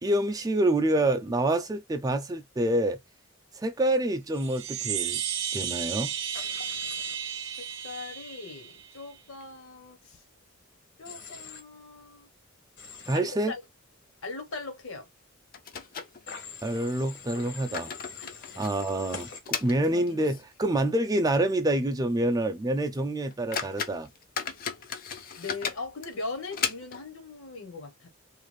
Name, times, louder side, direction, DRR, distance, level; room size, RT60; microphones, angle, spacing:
voice 1, 0.0-3.0 3.6-5.2 5.5-6.1 13.1-13.5 16.6-17.9 18.6-24.1, right 1 dB, 20° right, 0.4 m, -27 dB
Chime, 4.3-9.0, right 8 dB, 70° right, 0.6 m, -33 dB
Human voice / Train, 6.3-7.1 11.0-11.6 12.8-13.2 16.3-19.4, left 5 dB, 60° left, 0.9 m, -44 dB
voice 2, 7.8-10.2 11.0-12.3 13.1-13.6 14.2-15.0 17.3-17.8 18.2-18.6 25.3-28.1, left 3 dB, 80° left, 1.2 m, -40 dB
sound 1, 8.8-9.8 10.1-10.2 10.5-10.6 11.3-11.7 12.0-12.2 12.8-13.0 13.3-13.5 14.8-14.9 15.5-16.7 17.4-20.6 20.9-21.0 21.6-21.7 22.1-22.3 22.8-22.9 23.3-27.2, left 7 dB, 45° left, 0.5 m, -37 dB
2.5 x 2.4 x 3.2 m
head